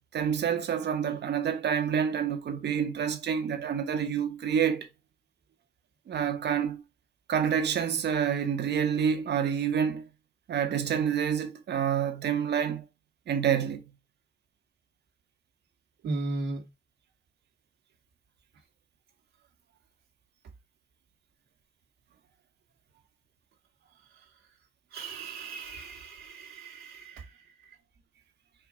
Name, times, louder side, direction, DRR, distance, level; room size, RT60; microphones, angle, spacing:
voice 1, 0.1-4.9 6.1-6.8 7.3-10.1 10.5-12.9 13.3-13.8, right 8 dB, 60° right, 1.2 m, -28 dB
voice 2, 16.0-16.6 24.9-27.3, right 2 dB, 75° right, 1.6 m, -36 dB
4.7 x 2.5 x 3.6 m
cardioid pair, 90°, 20 cm